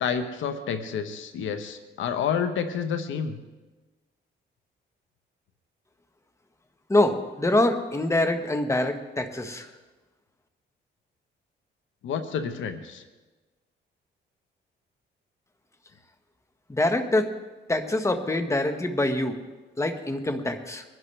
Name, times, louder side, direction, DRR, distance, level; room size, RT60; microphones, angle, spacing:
voice 1, 0.0-3.4 12.0-13.0, left 7 dB, 75° left, 8 dB, 1.1 m, -29 dB
voice 2, 6.9-9.7 16.7-17.3 17.7-19.3 19.8-20.8, left 1 dB, 15° left, 7 dB, 1.3 m, -25 dB
22.0 x 11.0 x 3.4 m, 1.2 s
cardioid pair, 90°, 20 cm